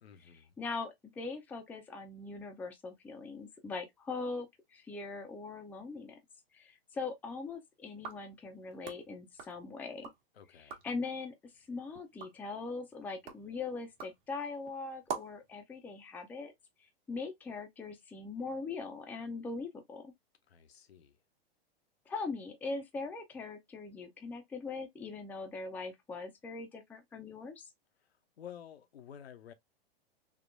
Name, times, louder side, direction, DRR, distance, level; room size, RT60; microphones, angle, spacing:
voice 1, 0.0-0.6 10.3-10.8 20.5-21.2 28.0-29.5, left 9 dB, 80° left, 0.7 m, -52 dB
voice 2, 0.6-6.2 6.5-10.1 10.8-16.5 16.8-20.1 22.1-27.7, left 4 dB, 5° left, 0.4 m, -41 dB
sound 1, 7.9-10.2 10.5-11.0 11.5-15.5, right 6 dB, 60° right, 1.1 m, -47 dB
3.7 x 2.1 x 2.5 m
hypercardioid pair, 110°, 31 cm